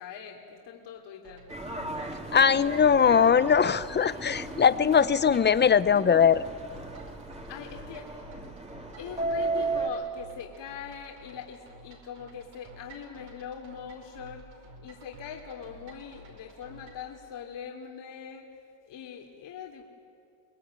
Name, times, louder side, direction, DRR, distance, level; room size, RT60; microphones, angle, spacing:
voice 1, 0.0-1.5 7.5-8.1 9.0-14.5 14.8-18.5 18.8-19.9, left 7 dB, 60° left, 2 dB, 2.8 m, -42 dB
sound 1, 1.2-17.1, right 1 dB, 65° right, 5.2 m, -51 dB
Subway metro underground, 1.5-9.9, right 2 dB, 15° right, 2.5 m, -35 dB
voice 2, 2.3-6.4, left 7 dB, 20° left, 16 dB, 0.5 m, -21 dB
24.0 x 20.5 x 8.9 m, 2.4 s
cardioid pair, 110°, 49 cm